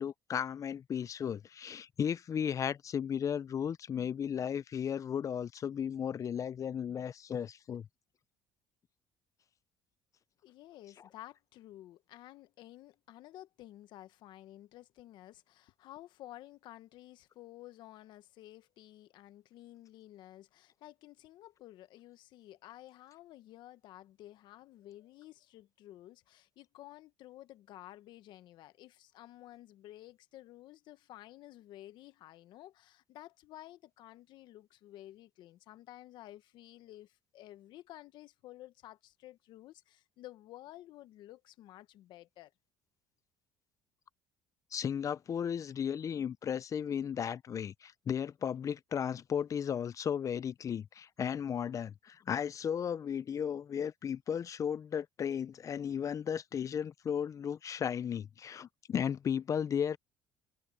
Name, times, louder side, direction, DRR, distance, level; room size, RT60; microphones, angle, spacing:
voice 1, 0.0-7.9 44.7-60.0, left 8 dB, 40° left, 0.6 m, -35 dB
voice 2, 10.4-42.5, left 14 dB, 70° left, 1.3 m, -53 dB
supercardioid pair, 80°, 8 cm